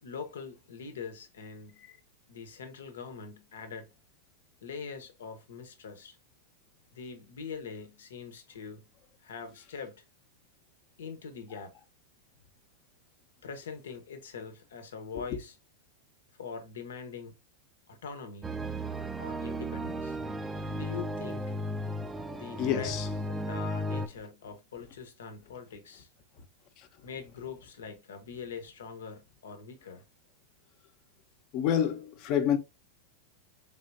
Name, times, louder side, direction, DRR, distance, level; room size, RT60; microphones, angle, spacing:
voice 1, 0.0-1.9 2.3-3.9 4.6-6.2 6.9-8.9 9.2-10.0 11.0-11.7 13.4-15.5 16.4-17.3 17.9-18.6 19.2-20.2 20.7-21.5 22.3-23.0 23.3-26.1 27.0-30.0, left 5 dB, 85° left, 0.9 m, -43 dB
sound 1, 18.4-24.1, right 1 dB, 10° right, 0.4 m, -35 dB
voice 2, 22.6-23.1 31.5-32.6, left 9 dB, 50° left, 0.8 m, -27 dB
3.7 x 3.5 x 2.6 m
hypercardioid pair, 115°, 0 cm